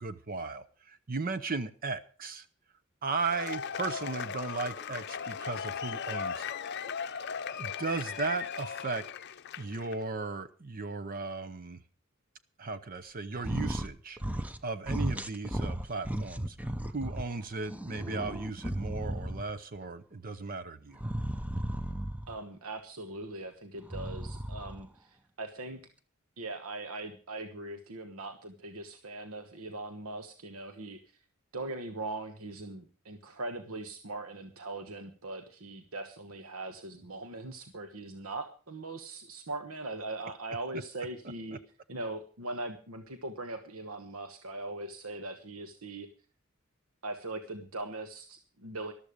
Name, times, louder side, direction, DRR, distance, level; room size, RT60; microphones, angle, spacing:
voice 1, 0.0-2.5 3.0-6.5 7.1-9.0 9.6-11.8 12.6-16.6 16.9-21.0, right 4 dB, 45° right, 12 dB, 0.7 m, -36 dB
Cheering / Applause / Crowd, 3.1-10.0, left 7 dB, 55° left, 0.6 m, -37 dB
sound 1, 13.4-13.9 14.2-14.6 14.9-17.2 17.7-19.6 20.9-22.4 23.8-24.8, right 1 dB, 5° right, 0.7 m, -35 dB
voice 2, 22.3-25.8 26.4-31.0 31.5-41.6 41.9-46.1 47.0-48.9, right 2 dB, 85° right, 7 dB, 1.3 m, -40 dB
14.0 x 12.5 x 5.1 m, 0.38 s
head